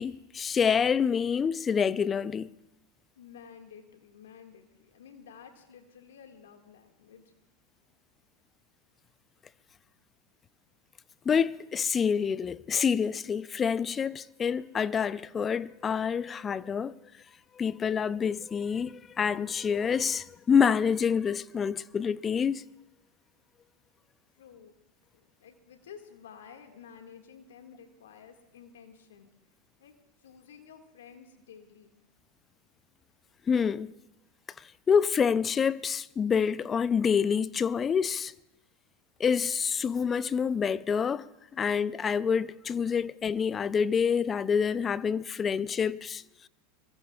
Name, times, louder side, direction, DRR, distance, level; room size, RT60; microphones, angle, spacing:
voice 1, 0.0-2.5 11.3-17.0 17.6-22.6 33.5-33.9 34.6-38.3 39.2-46.2, left 6 dB, 25° left, 0.5 m, -27 dB
voice 2, 3.2-7.2 24.3-24.7 25.1-29.3 29.8-29.9 30.2-31.9, left 7 dB, 75° left, 2.0 m, -52 dB
25.0 x 21.5 x 2.4 m
hypercardioid pair, 90°, 0 cm